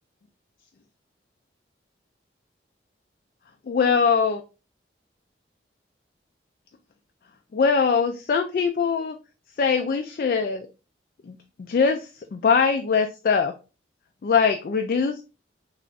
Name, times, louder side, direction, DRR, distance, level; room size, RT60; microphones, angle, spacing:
voice 1, 3.7-4.4 7.5-9.1 9.6-10.7 11.3-13.5 14.2-15.2, left 5 dB, 50° left, 5 dB, 0.3 m, -22 dB
3.4 x 2.5 x 3.8 m, 0.32 s
head